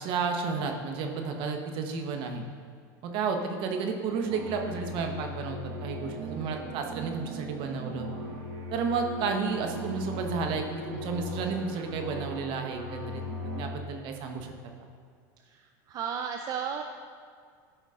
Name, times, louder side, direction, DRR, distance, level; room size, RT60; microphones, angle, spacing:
voice 1, 0.0-2.5 3.0-8.1 8.7-13.2 13.6-14.5, right 5 dB, 55° right, 4 dB, 1.1 m, -32 dB
sound 1, 4.3-13.6, equal, 75° right, 1.5 m, -38 dB
voice 2, 15.9-16.8, right 7 dB, 35° right, 5 dB, 0.5 m, -32 dB
13.0 x 5.1 x 3.8 m, 2.1 s
supercardioid pair, 125°, 10 cm